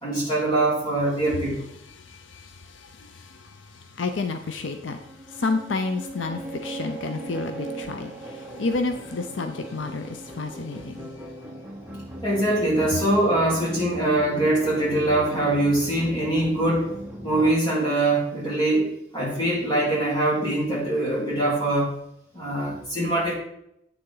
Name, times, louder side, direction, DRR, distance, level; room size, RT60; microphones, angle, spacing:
voice 1, 0.0-1.7 12.2-16.9 17.2-21.9 22.3-23.3, right 1 dB, 25° left, -5 dB, 3.4 m, -23 dB
voice 2, 1.9-11.1, left 3 dB, 80° left, 7 dB, 0.6 m, -31 dB
sound 1, 4.6-17.5, right 1 dB, 10° right, 1.1 m, -38 dB
8.5 x 6.8 x 3.9 m, 0.78 s
head